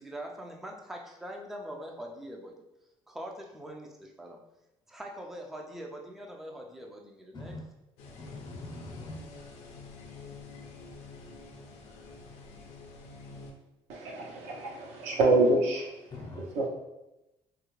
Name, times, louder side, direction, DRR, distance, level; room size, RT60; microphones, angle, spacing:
voice 1, 0.0-2.6 3.1-4.4 4.9-7.6, equal, 5° right, 0 dB, 0.4 m, -43 dB
sound 1, 8.0-13.5, left 3 dB, 90° left, 0.5 m, -48 dB
voice 2, 8.2-9.2 16.1-16.5, left 2 dB, 40° left, 1 dB, 0.7 m, -42 dB
voice 3, 13.9-15.9 16.5-16.7, right 2 dB, 75° right, -1 dB, 0.8 m, -26 dB
3.2 x 2.4 x 3.1 m, 0.94 s
cardioid pair, 110°, 11 cm